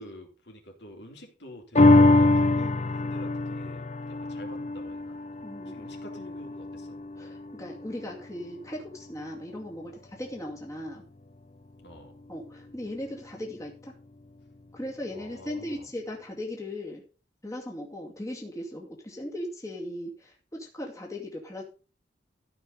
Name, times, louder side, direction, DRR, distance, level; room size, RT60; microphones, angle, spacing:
voice 1, 0.0-5.2 5.7-7.0 11.8-12.1 15.1-15.9, equal, 65° left, 2 dB, 3.7 m, -47 dB
sound 1, 1.7-8.4 8.9-9.0, left 2 dB, 40° left, 0.8 m, -24 dB
voice 2, 5.4-5.8 7.2-11.1 12.3-13.9 14.7-17.0 17.4-21.6, left 1 dB, 20° left, -1 dB, 2.4 m, -38 dB
14.0 x 5.8 x 5.3 m, 0.35 s
head